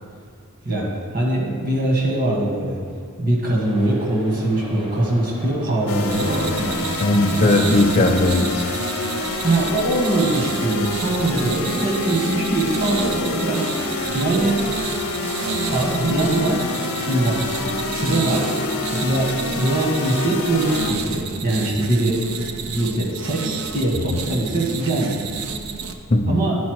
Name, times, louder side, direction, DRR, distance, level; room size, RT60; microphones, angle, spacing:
voice 1, 0.6-2.8 3.2-6.8 9.4-13.6 14.1-14.6 15.4-16.6 17.0-17.3 17.9-18.5 18.9-22.2 22.6-25.2 26.3-26.6, right 2 dB, 40° right, -2 dB, 1.3 m, -22 dB
sound 1, 3.6-11.7, equal, 20° right, 0.7 m, -41 dB
sound 2, 5.9-20.9, left 3 dB, 70° left, 0.7 m, -27 dB
sound 3, 6.1-25.9, right 5 dB, 70° right, 0.5 m, -31 dB
voice 2, 7.0-8.7 24.1-24.2 26.1-26.4, left 2 dB, 30° left, 2 dB, 0.5 m, -18 dB
9.4 x 4.1 x 4.7 m, 2.1 s
head